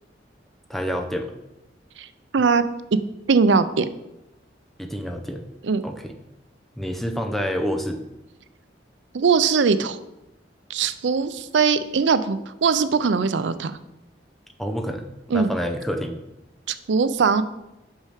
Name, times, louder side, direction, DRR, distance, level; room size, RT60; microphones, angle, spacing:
voice 1, 0.7-1.3 4.8-5.5 5.8-6.1 6.8-8.0 14.6-16.2, equal, ahead, 5 dB, 0.6 m, -28 dB
voice 2, 3.3-3.9 5.6-5.8 9.1-10.0 10.7-13.7 15.3-15.5 16.7-17.4, right 5 dB, 80° right, 12 dB, 0.5 m, -20 dB
6.2 x 5.6 x 4.9 m, 0.92 s
head